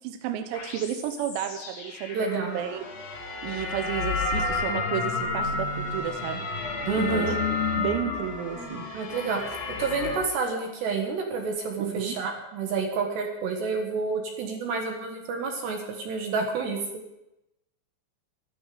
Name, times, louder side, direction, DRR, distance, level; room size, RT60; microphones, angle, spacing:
voice 1, 0.0-2.9 3.4-6.5 7.0-7.4 7.8-8.8 11.8-12.2, right 10 dB, 85° right, 6 dB, 3.6 m, -32 dB
sound 1, 0.5-10.2, left 3 dB, 40° left, 3.0 m, -31 dB
voice 2, 2.1-2.6 6.9-7.4 8.9-9.4 9.8-16.8, right 4 dB, 65° right, 2 dB, 3.2 m, -29 dB
15.5 x 12.0 x 5.0 m, 0.90 s
omnidirectional pair, 6.0 m